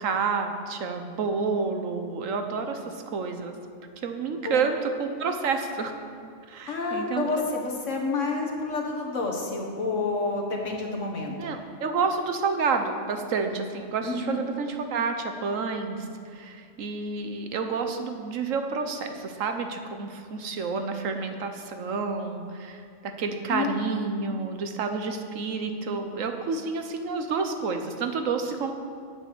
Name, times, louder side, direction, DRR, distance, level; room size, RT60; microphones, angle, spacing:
voice 1, 0.0-3.5 4.0-5.9 6.5-7.2 11.3-16.1 16.3-28.7, right 4 dB, 75° right, 6 dB, 1.3 m, -29 dB
voice 2, 6.7-11.5 14.0-14.4 23.5-23.7, left 3 dB, 70° left, 1 dB, 1.8 m, -29 dB
9.5 x 8.3 x 6.1 m, 2.3 s
omnidirectional pair, 1.4 m